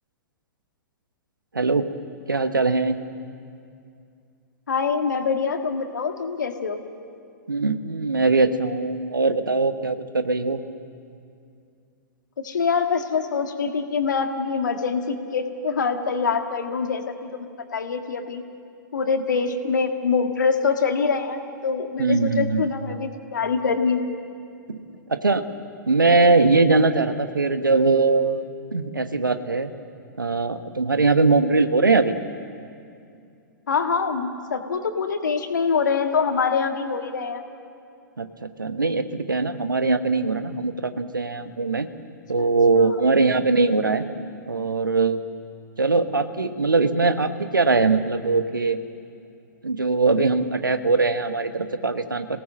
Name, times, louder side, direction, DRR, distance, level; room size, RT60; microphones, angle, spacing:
voice 1, 1.5-1.9 2.3-3.0 7.5-10.6 22.0-22.7 24.7-24.8 25.1-25.5 25.9-28.4 28.7-29.7 30.2-32.1 38.2-41.9 42.3-44.0 44.5-45.2 45.8-48.8 49.6-52.3, right 3 dB, 75° right, 10 dB, 1.2 m, -21 dB
voice 2, 4.7-6.8 12.4-18.4 18.9-24.1 33.7-37.4 42.4-43.0, left 5 dB, 65° left, 6 dB, 1.9 m, -25 dB
27.0 x 18.0 x 7.6 m, 2.4 s
figure-of-eight pair, 110°, 11 cm